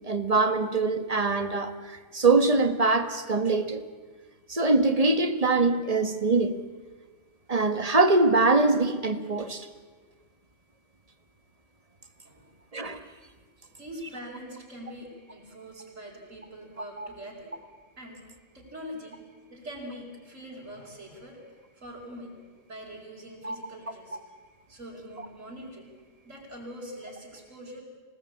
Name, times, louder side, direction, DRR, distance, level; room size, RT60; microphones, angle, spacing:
voice 1, 0.0-3.8 4.5-6.6 7.5-9.7 12.7-13.0 17.0-17.1 23.4-23.6, right 3 dB, 30° right, 10 dB, 1.6 m, -23 dB
voice 2, 13.8-17.7 18.0-18.3 18.5-19.2 19.5-22.4 22.7-24.2 24.7-26.0 26.3-27.8, equal, 80° right, -3 dB, 5.2 m, -43 dB
25.5 x 18.5 x 8.6 m, 1.4 s
omnidirectional pair, 1.3 m